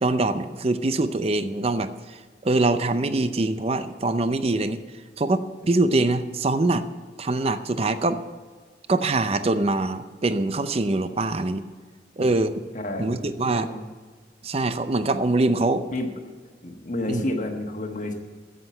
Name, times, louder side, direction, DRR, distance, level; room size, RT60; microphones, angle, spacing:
voice 1, 0.0-4.8 5.2-6.8 7.2-8.2 8.9-11.6 12.2-12.5 13.0-13.7 14.4-15.8 17.1-17.2, right 2 dB, 35° right, 11 dB, 0.5 m, -23 dB
voice 2, 12.7-13.8 15.9-16.1 16.6-18.1, left 1 dB, 45° left, 2 dB, 1.3 m, -30 dB
9.9 x 7.9 x 9.2 m, 1.5 s
head